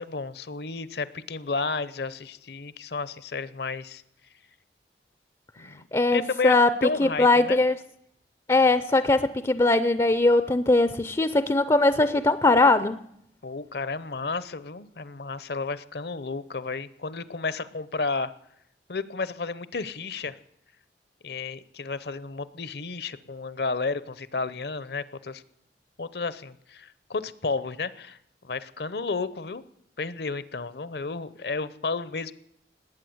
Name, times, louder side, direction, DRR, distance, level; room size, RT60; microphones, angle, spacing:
voice 1, 0.0-4.0 5.6-5.8 6.1-7.6 13.4-18.3 18.9-20.4 21.2-25.4 26.0-28.2 28.4-29.6 30.0-32.3, left 4 dB, 60° left, 17 dB, 0.8 m, -32 dB
voice 2, 5.9-6.7 7.0-7.7 8.5-13.0, left 2 dB, 20° left, 14 dB, 0.5 m, -20 dB
20.0 x 8.9 x 7.9 m, 0.74 s
head